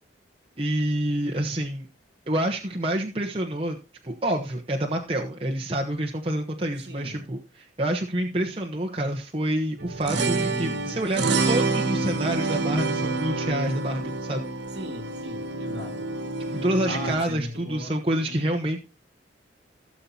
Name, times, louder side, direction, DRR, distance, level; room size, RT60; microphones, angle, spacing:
voice 1, 0.6-1.9 2.3-3.8 4.0-14.4 16.5-18.8, right 1 dB, 30° right, 1.1 m, -27 dB
voice 2, 6.8-7.3 14.7-16.1 16.5-18.5, equal, 65° right, 3.1 m, -39 dB
sound 1, 9.8-17.1, right 3 dB, 85° right, 1.3 m, -27 dB
17.0 x 7.0 x 2.9 m
head